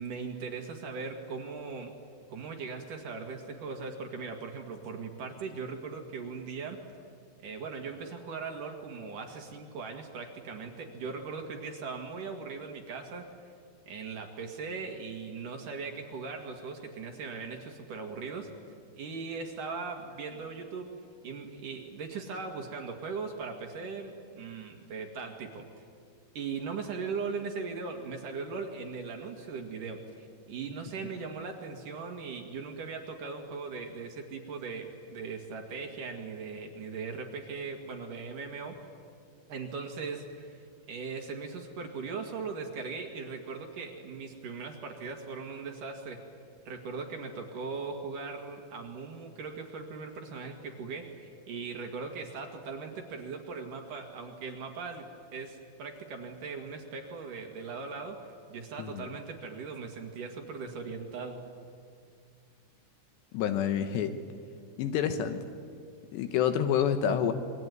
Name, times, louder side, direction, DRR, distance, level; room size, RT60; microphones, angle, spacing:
voice 1, 0.0-2.0 2.3-6.8 7.4-13.3 13.9-18.5 19.0-20.9 21.2-25.8 26.3-38.8 39.5-46.3 46.7-61.5, right 4 dB, 55° right, 3 dB, 3.0 m, -39 dB
voice 2, 63.3-64.2 64.8-65.4 66.1-67.3, left 9 dB, 75° left, 9 dB, 3.1 m, -28 dB
27.0 x 23.0 x 9.5 m, 2.2 s
omnidirectional pair, 5.4 m